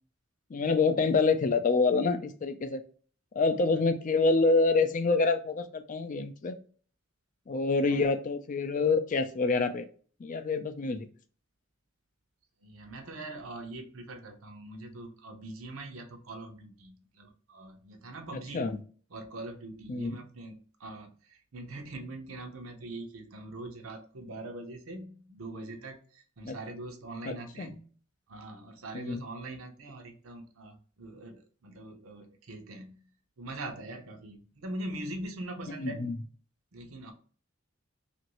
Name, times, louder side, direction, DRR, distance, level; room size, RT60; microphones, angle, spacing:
voice 1, 0.5-2.8 3.3-6.6 7.5-9.9 10.2-11.1 18.5-18.8 19.9-20.2 26.4-26.6 27.3-27.7 28.9-29.2 35.7-36.1, left 3 dB, 40° left, 9 dB, 0.4 m, -27 dB
voice 2, 12.6-18.7 19.1-27.8 28.3-33.0 33.4-36.0 36.7-37.1, right 2 dB, 85° right, 4 dB, 0.7 m, -42 dB
3.0 x 2.5 x 2.9 m, 0.42 s
head